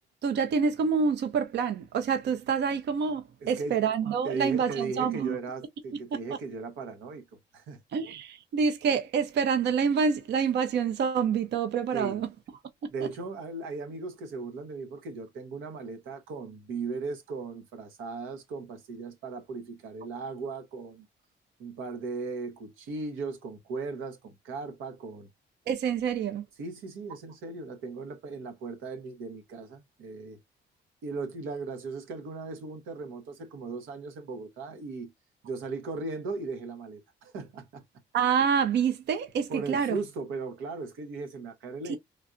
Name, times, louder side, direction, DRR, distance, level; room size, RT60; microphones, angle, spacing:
voice 1, 0.2-5.4 6.1-6.2 7.9-12.3 12.8-13.1 25.7-26.4 38.1-40.0 41.9-42.0, right 6 dB, 60° right, 0.6 m, -27 dB
voice 2, 3.4-3.8 4.2-7.2 7.5-7.8 11.9-12.2 12.9-21.1 21.6-25.3 26.6-30.4 31.0-35.1 35.4-37.8 39.5-42.0, right 3 dB, 90° right, 0.9 m, -37 dB
3.3 x 2.4 x 2.5 m
cardioid pair, 90°, 20 cm